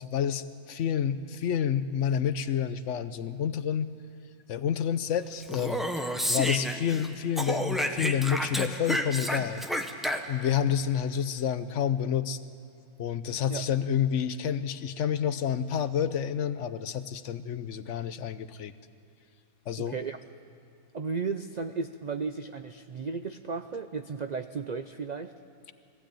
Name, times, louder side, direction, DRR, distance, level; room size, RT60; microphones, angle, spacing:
voice 1, 0.0-3.9 4.5-5.8 6.3-9.6 10.3-12.4 13.0-18.7 19.7-19.9, left 8 dB, 65° left, 13 dB, 0.9 m, -29 dB
Speech, 5.4-7.1 7.4-10.5, equal, ahead, 0.7 m, -30 dB
voice 2, 19.8-20.2 20.9-25.3, right 5 dB, 80° right, 9 dB, 0.3 m, -34 dB
21.0 x 15.5 x 8.9 m, 2.5 s
omnidirectional pair, 1.5 m